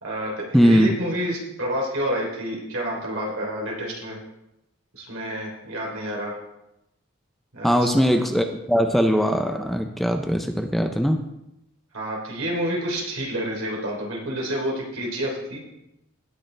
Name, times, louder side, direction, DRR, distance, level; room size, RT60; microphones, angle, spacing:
voice 1, 0.0-4.2 4.9-6.4 7.5-7.9 11.9-15.6, equal, 80° right, -2 dB, 3.4 m, -29 dB
voice 2, 0.5-0.9 7.6-11.2, equal, ahead, 5 dB, 0.5 m, -20 dB
18.0 x 6.5 x 3.3 m, 0.85 s
head